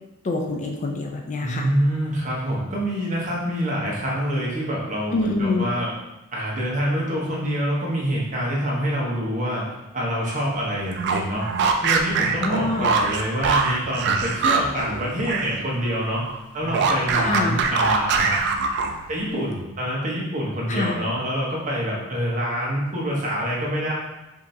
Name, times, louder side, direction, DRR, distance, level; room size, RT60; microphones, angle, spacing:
voice 1, 0.2-1.7 5.1-5.7 12.4-12.9 17.2-17.6 20.7-21.0, left 2 dB, 35° left, 1 dB, 0.4 m, -25 dB
voice 2, 1.4-5.9 6.3-9.7 9.9-16.2 16.5-18.4 19.1-23.9, equal, 35° right, -4 dB, 0.9 m, -26 dB
sound 1, 10.9-15.6 15.9-19.2, right 5 dB, 50° right, 0.4 m, -23 dB
5.0 x 2.6 x 2.7 m, 0.97 s
head